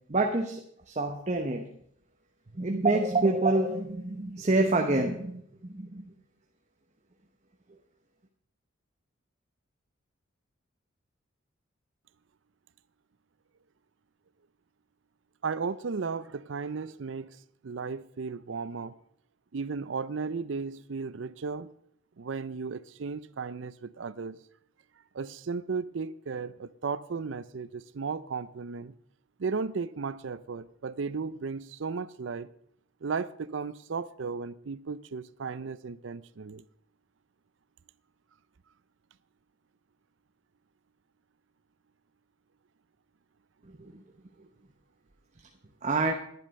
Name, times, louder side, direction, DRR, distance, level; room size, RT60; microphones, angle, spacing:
voice 1, 0.1-1.6 2.5-6.1 43.7-44.0 45.8-46.1, right 2 dB, 35° right, 0.9 m, -27 dB
voice 2, 15.4-17.4 17.6-18.9 19.5-21.7 22.2-24.4 25.1-28.9 29.4-32.5 33.0-36.6, right 5 dB, 70° right, 0.5 m, -35 dB
10.5 x 10.5 x 5.3 m
head